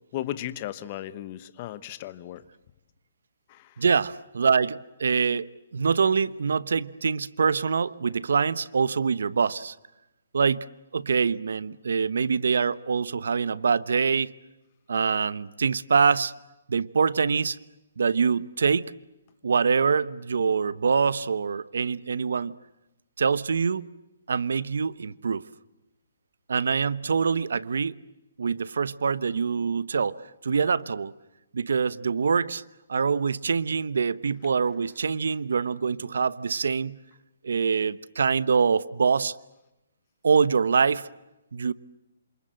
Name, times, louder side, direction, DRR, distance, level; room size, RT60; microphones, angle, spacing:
voice 1, 0.1-2.4 3.5-3.8, left 13 dB, 25° left, 1.1 m, -35 dB
voice 2, 3.8-9.7 10.3-10.7 10.9-14.3 14.9-16.3 16.7-17.6 18.0-18.9 19.4-22.5 23.2-23.9 24.3-25.4 26.5-28.0 28.4-31.1 31.5-32.6 32.9-37.0 37.4-39.3 40.2-41.1 41.5-41.7, right 5 dB, 70° right, 1.0 m, -24 dB
27.5 x 27.0 x 7.7 m
hypercardioid pair, 170°, 0 cm